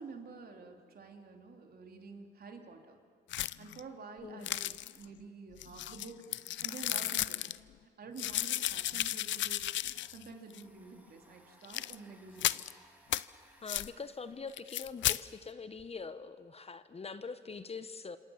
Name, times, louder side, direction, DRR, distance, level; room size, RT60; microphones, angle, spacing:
voice 1, 0.0-3.0 3.6-7.5 8.0-12.6, right 4 dB, 50° right, 4 dB, 3.4 m, -49 dB
sound 1, 3.3-3.8 4.4-5.0 5.6-7.6 8.2-10.3 10.5-10.6 11.6-11.9 12.4-12.7 13.1-13.2 13.7-13.9 14.5-15.2, left 13 dB, 70° left, 0.6 m, -34 dB
Domestic sounds home sounds, 9.7-15.8, right 1 dB, 10° right, 3.6 m, -64 dB
voice 2, 13.6-18.2, left 5 dB, 30° left, 12 dB, 1.0 m, -43 dB
26.5 x 26.0 x 7.3 m, 2.3 s
cardioid pair, 90°, 20 cm